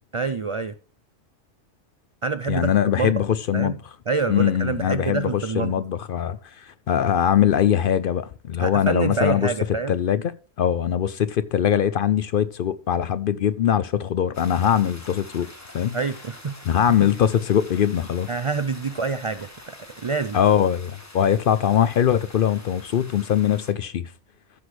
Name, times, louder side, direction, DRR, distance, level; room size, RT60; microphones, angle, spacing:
voice 1, 0.1-0.7 2.2-2.7 3.0-3.2 3.5-3.8 4.1-5.7 8.6-10.0 15.9-16.5 17.0-17.1 18.3-20.4, right 4 dB, 60° right, 0.3 m, -26 dB
voice 2, 2.5-3.8 4.3-9.5 9.9-10.3 10.6-15.5 15.7-16.0 16.6-18.3 20.3-24.0, left 9 dB, 60° left, 0.6 m, -22 dB
sound 1, 14.3-23.7, left 1 dB, 15° left, 1.2 m, -45 dB
14.5 x 6.2 x 3.1 m
omnidirectional pair, 1.2 m